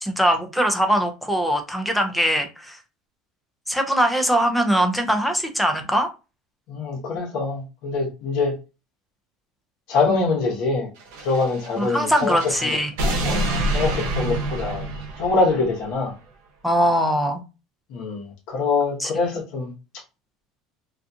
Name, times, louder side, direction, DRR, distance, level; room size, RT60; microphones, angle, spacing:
voice 1, 0.0-2.8 3.7-6.1 11.8-12.9 16.6-17.4 19.0-19.3, equal, ahead, 0.4 m, -21 dB
voice 2, 6.7-8.6 9.9-10.9 11.2-12.8 13.0-14.8 15.2-16.1 17.9-19.7, left 3 dB, 50° left, 0.9 m, -24 dB
sound 1, 11.0-15.8, right 1 dB, 85° right, 0.7 m, -27 dB
2.4 x 2.3 x 2.6 m
cardioid pair, 165°, 0 cm